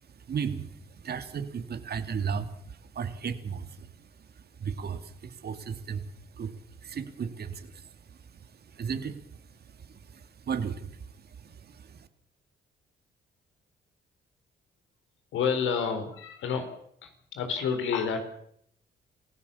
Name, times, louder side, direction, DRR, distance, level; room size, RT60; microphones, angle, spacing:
voice 1, 0.1-12.1, right 6 dB, 55° right, 9 dB, 2.5 m, -36 dB
voice 2, 15.3-16.7 17.0-18.2, left 6 dB, 80° left, 7 dB, 4.6 m, -29 dB
27.5 x 16.0 x 7.2 m, 0.68 s
cardioid pair, 90°, 20 cm